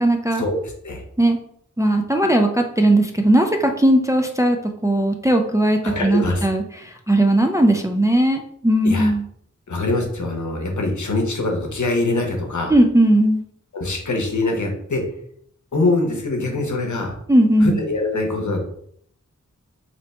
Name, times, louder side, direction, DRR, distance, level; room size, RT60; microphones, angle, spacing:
voice 1, 0.0-0.4 1.2-1.4 1.8-4.6 4.8-9.2 12.7-13.4 17.3-17.8, right 1 dB, 10° right, 4 dB, 0.3 m, -18 dB
voice 2, 5.8-6.5 8.8-9.1 9.7-12.7 13.7-15.0 15.7-17.1 17.6-18.6, left 2 dB, 70° left, 2 dB, 0.8 m, -23 dB
2.8 x 2.1 x 4.1 m, 0.66 s
wide cardioid pair, 50°, 31 cm